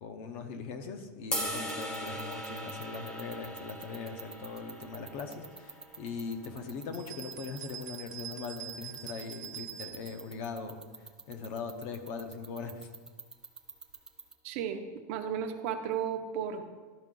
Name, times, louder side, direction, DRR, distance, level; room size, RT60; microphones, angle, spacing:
voice 1, 0.0-10.8 11.3-12.9, left 5 dB, 40° left, 7 dB, 0.7 m, -40 dB
sound 1, 1.3-7.5, equal, 10° left, 0.8 m, -40 dB
sound 2, 1.6-14.3, right 4 dB, 5° right, 0.3 m, -45 dB
sound 3, 6.9-10.3, right 9 dB, 80° right, 0.7 m, -44 dB
voice 2, 14.4-14.8 15.1-16.6, right 8 dB, 45° right, 6 dB, 0.7 m, -33 dB
12.5 x 5.0 x 3.8 m, 1.4 s
supercardioid pair, 175°, 10 cm